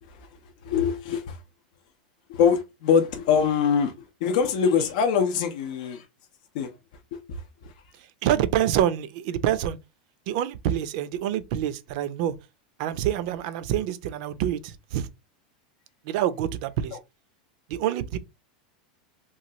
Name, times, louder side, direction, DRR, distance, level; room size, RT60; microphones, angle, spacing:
voice 1, 0.6-1.4 2.3-6.1 6.5-6.8 7.1-7.7, left 7 dB, 65° left, 0.5 m, -24 dB
voice 2, 8.0-9.8 10.3-12.4 12.8-15.1 16.0-17.0 17.7-18.2, right 11 dB, 60° right, 0.4 m, -26 dB
3.1 x 2.3 x 2.7 m
supercardioid pair, 135°, 4 cm